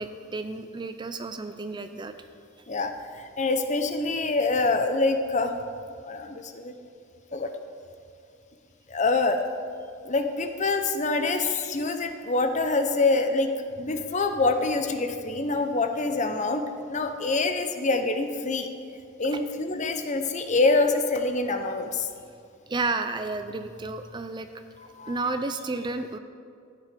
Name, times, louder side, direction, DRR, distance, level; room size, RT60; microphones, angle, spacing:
voice 1, 0.0-2.1 19.2-19.4 22.7-24.5 25.1-26.2, right 3 dB, 20° right, 9 dB, 0.4 m, -31 dB
voice 2, 2.7-5.5 6.0-6.7 7.3-7.5 8.9-9.4 10.0-13.5 13.8-18.7 19.2-22.1 24.9-25.2, left 3 dB, 35° left, 7 dB, 0.8 m, -25 dB
13.5 x 9.1 x 5.2 m, 2.4 s
head